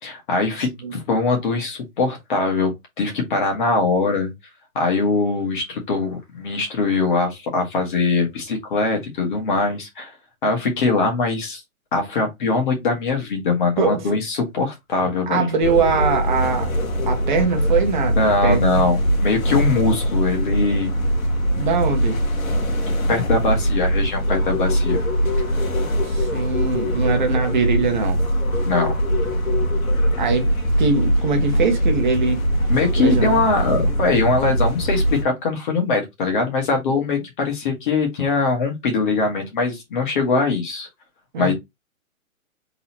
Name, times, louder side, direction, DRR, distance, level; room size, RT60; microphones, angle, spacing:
voice 1, 0.0-2.7 3.0-4.3 4.8-10.1 10.4-11.6 11.9-15.5 18.2-20.9 22.8-25.0 28.7-29.0 32.7-40.9 41.4-41.5, left 3 dB, 35° left, 1.9 m, -22 dB
voice 2, 13.8-14.2 15.3-16.7 17.1-18.8 21.5-22.2 26.0-28.2 30.2-30.5 30.8-32.4 33.0-33.5 41.3-41.5, right 4 dB, 35° right, 1.1 m, -22 dB
sound 1, 15.6-35.2, equal, 80° left, 1.7 m, -21 dB
4.0 x 3.8 x 2.9 m
hypercardioid pair, 165°, 41 cm